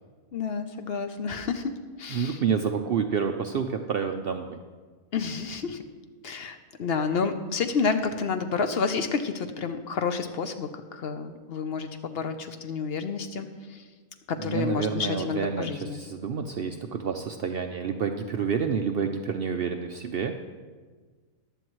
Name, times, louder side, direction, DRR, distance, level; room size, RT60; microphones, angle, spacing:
voice 1, 0.3-1.7 2.0-2.4 5.1-5.9 6.2-13.8 14.3-16.0, left 5 dB, 55° left, 8 dB, 0.8 m, -30 dB
voice 2, 2.1-4.6 14.4-20.3, right 6 dB, 70° right, 5 dB, 0.5 m, -29 dB
15.0 x 11.0 x 3.1 m, 1.4 s
omnidirectional pair, 1.5 m